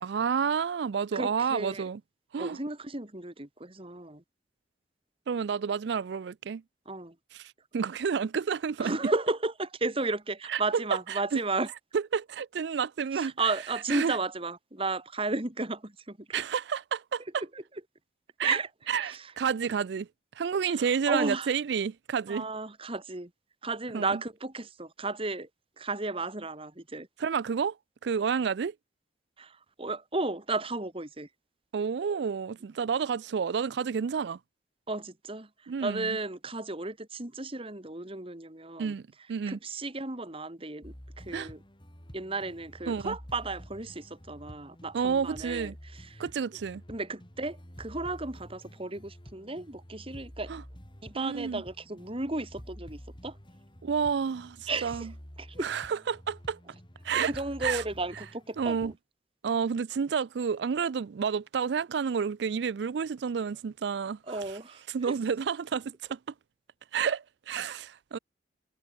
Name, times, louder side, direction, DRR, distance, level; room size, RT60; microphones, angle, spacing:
voice 1, 0.0-2.0 2.3-2.6 5.3-6.6 7.3-9.0 10.5-11.4 11.9-13.3 13.9-14.2 16.3-17.4 18.4-18.6 18.9-20.1 20.4-22.5 23.9-24.2 27.2-27.8 28.0-28.7 31.7-34.4 35.7-36.2 38.8-39.6 41.3-41.5 42.9-43.2 44.9-45.7 46.2-46.8 50.5-50.6 51.1-51.6 53.8-55.1 55.6-56.6 57.0-57.3 57.6-57.8 58.6-58.9 59.4-64.2 64.9-66.2 66.9-68.2, right 6 dB, 65° right, 0.4 m, -30 dB
voice 2, 1.1-1.8 2.4-4.2 6.9-7.1 8.8-11.7 13.1-16.2 17.4-17.6 18.4-18.7 19.0-19.3 20.7-21.5 22.3-23.3 23.6-25.5 25.8-27.1 29.4-31.3 34.9-35.5 35.8-38.9 39.5-41.6 42.1-46.2 46.9-50.5 51.0-53.4 54.7-55.1 55.4-55.7 57.1-58.9 64.3-65.1, right 3 dB, 30° right, 2.1 m, -34 dB
sound 1, 40.8-59.0, equal, 25° left, 5.7 m, -49 dB
head